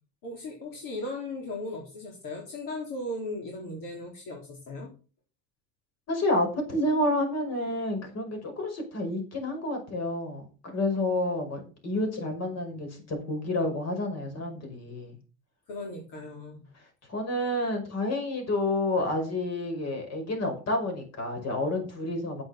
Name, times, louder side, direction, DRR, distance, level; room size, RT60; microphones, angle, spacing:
voice 1, 0.2-4.9 15.7-16.6, left 2 dB, 65° left, 0 dB, 3.9 m, -37 dB
voice 2, 6.1-15.2 16.7-16.8 17.1-22.4, left 1 dB, 45° left, 4 dB, 5.5 m, -29 dB
9.5 x 8.1 x 5.8 m, 0.35 s
cardioid pair, 130°, 36 cm